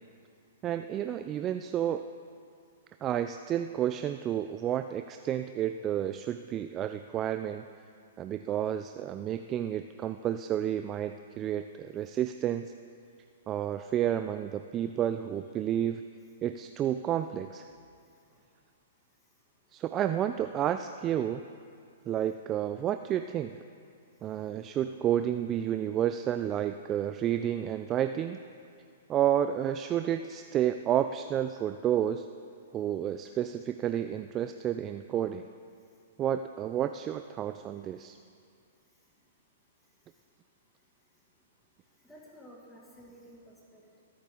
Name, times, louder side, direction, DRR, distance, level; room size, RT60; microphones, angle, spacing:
voice 1, 0.6-2.0 3.0-7.7 8.2-12.7 13.5-16.0 16.4-17.7 19.7-21.4 22.1-23.6 24.2-28.4 29.1-32.3 32.7-35.4 36.2-38.2, right 10 dB, 25° right, 9 dB, 0.4 m, -30 dB
voice 2, 42.0-44.0, equal, 5° left, -5 dB, 2.2 m, -53 dB
22.0 x 8.6 x 3.8 m, 2.3 s
hypercardioid pair, 125°, 0 cm